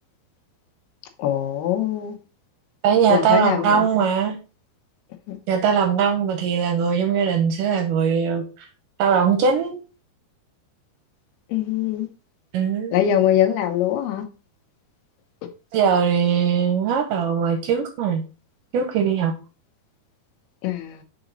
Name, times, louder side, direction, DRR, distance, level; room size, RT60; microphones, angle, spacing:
voice 1, 1.2-2.2 3.1-3.8 5.3-5.4 11.5-12.1 12.9-14.3 20.6-21.0, left 11 dB, 80° left, 2.8 m, -22 dB
voice 2, 2.8-4.4 5.5-8.4 9.0-9.8 12.5-12.9 15.7-18.2 18.7-19.3, right 7 dB, 75° right, 2.0 m, -20 dB
6.8 x 4.0 x 3.8 m
omnidirectional pair, 4.6 m